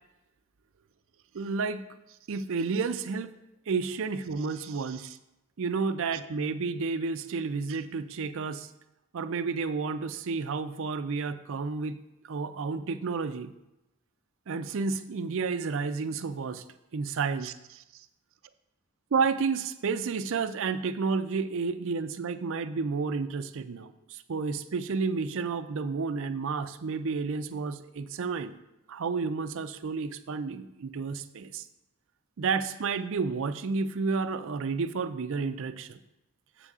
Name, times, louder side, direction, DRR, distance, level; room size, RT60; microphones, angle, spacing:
voice 1, 1.3-1.8 2.3-3.3 3.7-5.2 5.6-8.7 9.1-13.5 14.5-16.6 16.9-18.0 19.1-28.6 28.9-31.6 32.4-36.0, right 4 dB, 60° right, 11 dB, 0.4 m, -31 dB
7.4 x 6.7 x 3.6 m, 0.94 s
head